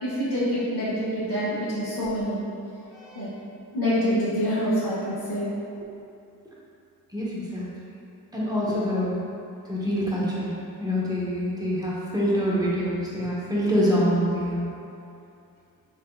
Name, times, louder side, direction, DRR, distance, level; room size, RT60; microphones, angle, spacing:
voice 1, 0.0-2.5 2.9-3.3 3.7-5.5, equal, 55° left, -12 dB, 1.1 m, -26 dB
voice 2, 7.1-7.7 8.3-9.2 9.7-14.7, equal, 10° right, -7 dB, 0.9 m, -25 dB
3.9 x 3.5 x 2.3 m, 2.6 s
cardioid pair, 75°, 40 cm